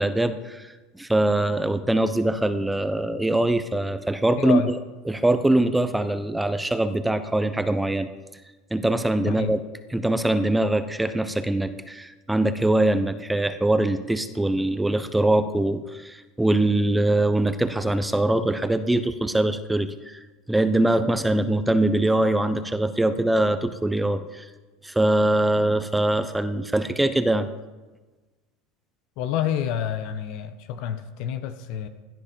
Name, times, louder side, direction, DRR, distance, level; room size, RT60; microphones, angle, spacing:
voice 1, 0.0-4.6 5.1-8.1 8.7-9.6 9.9-24.5 24.8-27.5, right 1 dB, 5° right, 10 dB, 1.0 m, -23 dB
voice 2, 4.4-4.7 9.3-9.5 29.2-31.9, left 9 dB, 65° left, 10 dB, 1.3 m, -28 dB
17.0 x 11.5 x 5.4 m, 1.2 s
hypercardioid pair, 95°, 0 cm